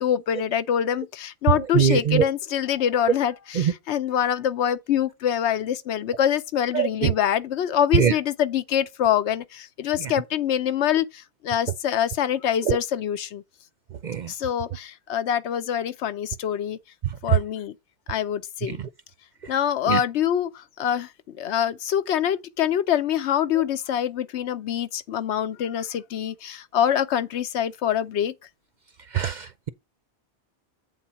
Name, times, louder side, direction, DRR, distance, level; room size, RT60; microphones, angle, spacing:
voice 1, 0.0-13.4 14.3-16.8 17.2-17.7 18.1-18.8 19.5-21.1 21.4-28.3, left 9 dB, 75° left, 0.9 m, -25 dB
voice 2, 1.7-2.2 3.6-3.7 6.7-7.1 7.9-8.1 12.6-12.8 14.0-14.3 18.7-18.8 19.9-20.0 29.1-29.7, right 8 dB, 55° right, 0.5 m, -22 dB
8.0 x 4.0 x 5.7 m
omnidirectional pair, 1.2 m